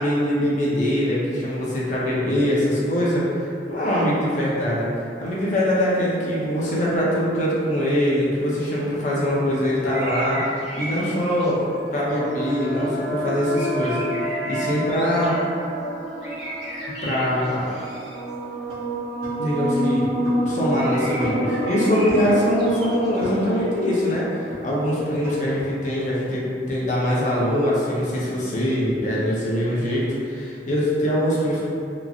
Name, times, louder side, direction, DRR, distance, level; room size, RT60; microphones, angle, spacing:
voice 1, 0.0-4.9 5.2-11.6 11.9-14.1 14.4-15.4 17.0-17.7 19.4-20.1 20.4-31.6, equal, 45° left, -6 dB, 0.6 m, -23 dB
sound 1, 9.8-11.7 12.1-13.0 13.4-15.4 16.2-18.2 20.7-23.7, right 1 dB, 75° right, 0.9 m, -36 dB
sound 2, 11.6-25.4, equal, 10° right, 0.7 m, -29 dB
sound 3, 18.7-19.3 19.6-23.7 23.9-24.2 24.5-24.6 25.0-25.6, left 1 dB, 35° right, 1.0 m, -36 dB
3.0 x 2.5 x 2.4 m, 2.5 s
head